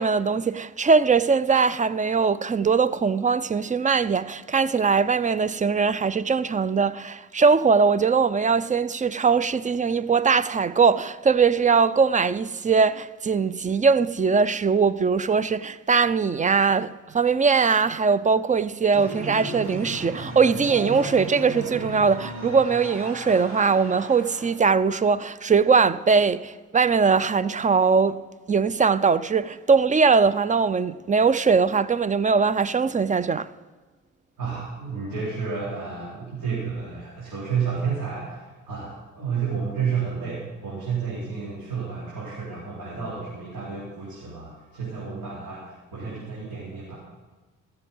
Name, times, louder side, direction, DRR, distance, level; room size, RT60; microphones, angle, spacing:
voice 1, 0.0-28.2 28.5-33.5, right 5 dB, 25° right, 0.4 m, -21 dB
sound 1, 18.9-24.5, right 1 dB, 40° right, 4.7 m, -35 dB
voice 2, 34.4-47.0, right 6 dB, 80° right, 3.8 m, -31 dB
16.0 x 6.9 x 5.4 m
cardioid pair, 75°, 31 cm